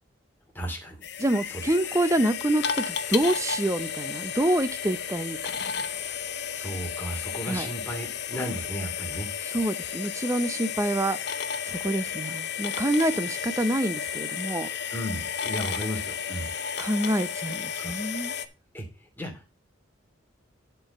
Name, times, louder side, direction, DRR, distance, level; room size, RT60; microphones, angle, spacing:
voice 1, 0.5-1.0 1.5-1.7 6.5-9.3 14.9-16.5 17.8-18.0 18.7-18.8 19.2-19.5, equal, 10° left, 2.5 m, -34 dB
sound 1, 1.0-18.5, left 7 dB, 60° left, 0.9 m, -33 dB
voice 2, 1.2-5.4 7.5-7.7 9.5-11.2 11.7-14.7 16.8-18.3, right 1 dB, 15° right, 0.6 m, -27 dB
11.0 x 4.6 x 5.2 m
head